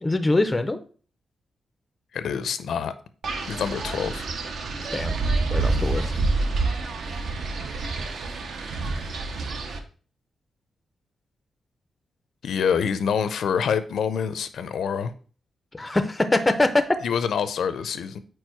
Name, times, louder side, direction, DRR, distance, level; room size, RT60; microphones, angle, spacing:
voice 1, 0.0-0.8 4.9-5.2 5.5-6.1 15.7-16.8, left 2 dB, 15° left, 0.4 m, -23 dB
voice 2, 2.1-2.9 3.4-4.3 12.4-15.1 17.0-18.2, left 7 dB, 70° left, 0.5 m, -26 dB
Wind, 3.2-9.8, right 3 dB, 60° right, 0.8 m, -27 dB
4.6 x 4.6 x 4.5 m
wide cardioid pair, 165°, 0 cm